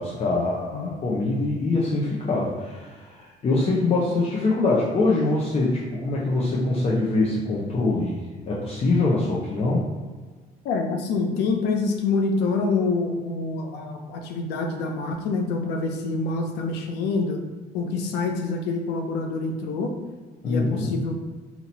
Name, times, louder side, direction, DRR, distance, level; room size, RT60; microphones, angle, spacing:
voice 1, 0.0-9.9 20.4-21.0, left 2 dB, 40° left, -5 dB, 0.9 m, -24 dB
voice 2, 10.6-17.4 17.7-19.9 20.4-21.1, left 3 dB, 90° left, 4 dB, 0.7 m, -26 dB
4.2 x 2.9 x 4.2 m, 1.4 s
cardioid pair, 110°, 17 cm